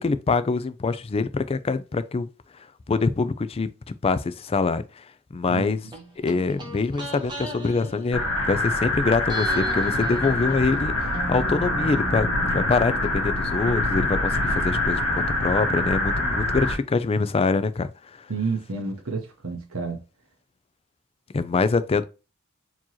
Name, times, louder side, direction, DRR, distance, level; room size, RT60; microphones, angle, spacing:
voice 1, 0.0-2.3 2.9-3.7 4.0-5.0 5.3-5.8 6.2-18.2 21.3-22.0, left 4 dB, 25° left, 0.4 m, -24 dB
voice 2, 5.5-5.8 18.3-20.0, right 4 dB, 70° right, 0.9 m, -30 dB
sound 1, 5.9-8.9 9.3-13.1 13.4-13.5, right 1 dB, 20° right, 1.2 m, -37 dB
sound 2, 8.1-16.7, left 1 dB, 80° left, 1.1 m, -25 dB
sound 3, 9.5-15.8, equal, 45° right, 0.7 m, -42 dB
4.5 x 2.9 x 2.9 m
head